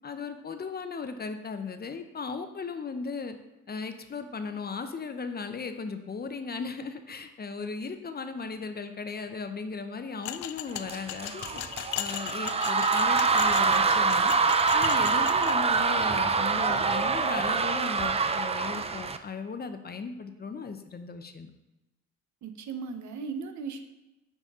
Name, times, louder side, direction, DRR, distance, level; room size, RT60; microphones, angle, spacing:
voice 1, 0.0-3.4 3.7-11.6 12.0-14.3 14.7-21.5, left 5 dB, 30° left, 8 dB, 0.7 m, -37 dB
sound 1, 10.2-15.5, left 12 dB, 70° left, 0.4 m, -37 dB
sound 2, 10.9-19.2, right 4 dB, 20° right, 0.4 m, -25 dB
voice 2, 22.4-23.8, right 5 dB, 70° right, 7 dB, 0.9 m, -37 dB
9.2 x 4.1 x 3.6 m, 1.0 s
cardioid pair, 90°, 30 cm